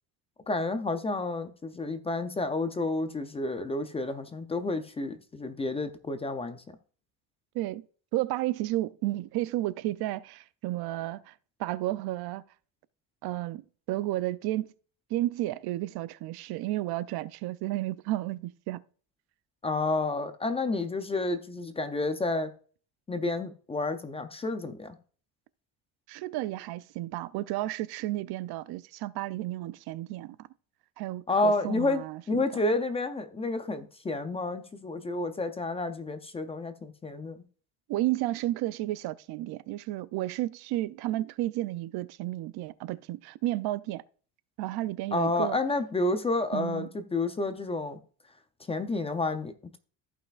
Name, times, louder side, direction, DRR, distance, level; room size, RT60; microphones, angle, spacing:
voice 1, 0.5-6.6 19.6-22.5 23.1-25.0 31.3-37.4 45.1-48.0 48.7-49.8, left 2 dB, 15° left, 0.4 m, -30 dB
voice 2, 8.1-11.3 11.6-12.4 13.2-13.6 13.9-14.7 15.1-18.8 26.1-30.4 31.0-32.4 37.9-44.0 44.6-45.6 46.5-46.9, right 16 dB, 65° right, 0.5 m, -32 dB
14.5 x 5.6 x 2.4 m
cardioid pair, 170°, 41 cm